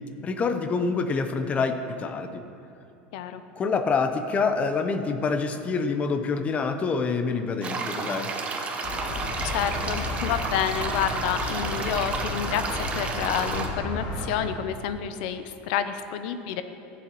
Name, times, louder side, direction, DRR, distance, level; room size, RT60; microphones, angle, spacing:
voice 1, 0.2-2.4 3.6-8.3, left 4 dB, 25° left, 8 dB, 0.7 m, -26 dB
sound 1, 7.6-13.7, right 4 dB, 25° right, 0.9 m, -32 dB
sound 2, 8.8-14.3, left 2 dB, 55° left, 2.2 m, -33 dB
voice 2, 9.4-16.6, left 9 dB, 70° left, 10 dB, 0.6 m, -29 dB
15.0 x 7.1 x 3.0 m, 2.7 s
supercardioid pair, 125°, 5 cm